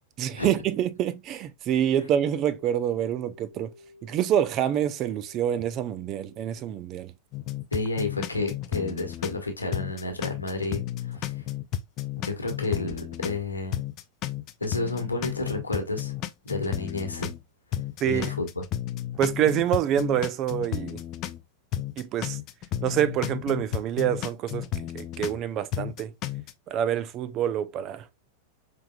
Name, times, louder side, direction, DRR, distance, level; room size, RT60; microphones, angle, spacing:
voice 1, 0.2-3.7 4.0-7.1 18.0-18.3 19.2-21.0 22.0-22.4 22.8-24.7 24.9-26.1 26.7-28.0, right 10 dB, 35° right, 0.4 m, -26 dB
sound 1, 1.6-6.6, left 3 dB, 50° right, 1.9 m, -53 dB
sound 2, 7.3-9.4 9.7-13.4 13.7-17.4 17.7-21.4 21.7-25.4 25.7-26.5, left 12 dB, 35° left, 0.4 m, -32 dB
voice 2, 7.7-11.3 12.2-13.8 14.6-16.1 16.4-17.3 18.0-18.6, left 2 dB, 80° left, 1.2 m, -31 dB
5.1 x 3.4 x 2.2 m
figure-of-eight pair, 90°, 0 cm